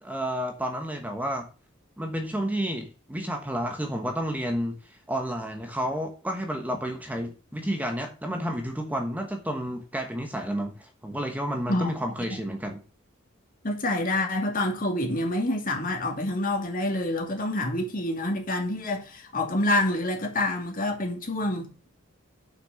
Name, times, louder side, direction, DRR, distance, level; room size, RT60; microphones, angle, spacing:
voice 1, 0.0-1.5 2.0-12.8, equal, 10° right, 1.2 m, -31 dB
voice 2, 13.6-21.9, left 1 dB, 45° left, 2.5 m, -27 dB
6.6 x 6.3 x 6.5 m
head